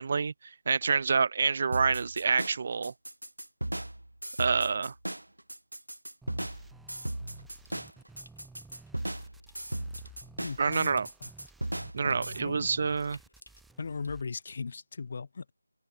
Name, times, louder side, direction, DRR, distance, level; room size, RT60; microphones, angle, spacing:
voice 1, 0.0-2.9 4.4-4.9 10.6-11.1 11.9-13.2, right 5 dB, 30° right, 0.4 m, -27 dB
sound 1, 1.7-12.4, right 1 dB, 75° right, 1.1 m, -37 dB
sound 2, 6.2-14.2, right 3 dB, ahead, 4.7 m, -54 dB
Water tap faucet / Sink (filling or washing) / Trickle dribble, 7.6-14.6, left 1 dB, 65° left, 6.3 m, -60 dB
voice 2, 10.4-11.3 12.3-12.7 13.8-15.5, left 5 dB, 35° left, 1.1 m, -38 dB
open air
figure-of-eight pair, 165°, 0 cm